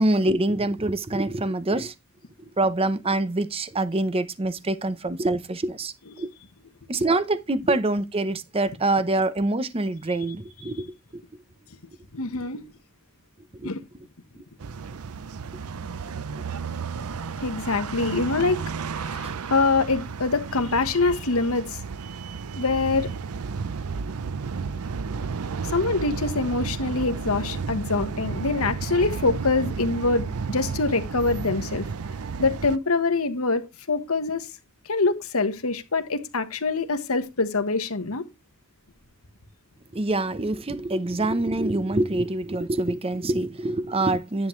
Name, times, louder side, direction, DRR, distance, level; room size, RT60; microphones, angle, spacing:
voice 1, 0.0-1.9 2.6-6.3 6.9-10.9 11.1-11.2 13.6-13.7 19.2-19.4 39.9-44.5, right 2 dB, 25° right, 0.7 m, -25 dB
voice 2, 12.1-12.6 13.6-13.8 17.4-18.6 18.9-21.8 22.5-23.1 25.6-31.8 32.4-34.5 34.8-38.2, left 3 dB, 75° left, 1.3 m, -25 dB
sound 1, 14.6-32.8, right 5 dB, 85° right, 0.6 m, -32 dB
10.5 x 7.9 x 3.2 m
head